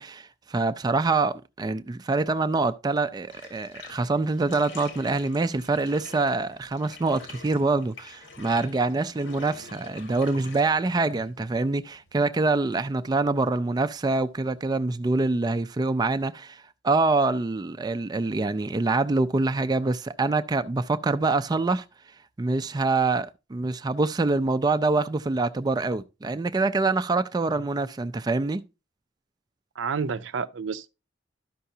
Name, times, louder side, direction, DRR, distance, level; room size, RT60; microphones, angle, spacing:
voice 1, 0.0-21.8 22.4-28.6, right 3 dB, 20° right, 0.4 m, -25 dB
Bathtub (filling or washing), 3.2-14.9, left 4 dB, 80° left, 1.5 m, -48 dB
voice 2, 29.8-30.9, right 5 dB, 85° right, 0.5 m, -30 dB
12.0 x 5.7 x 2.7 m
head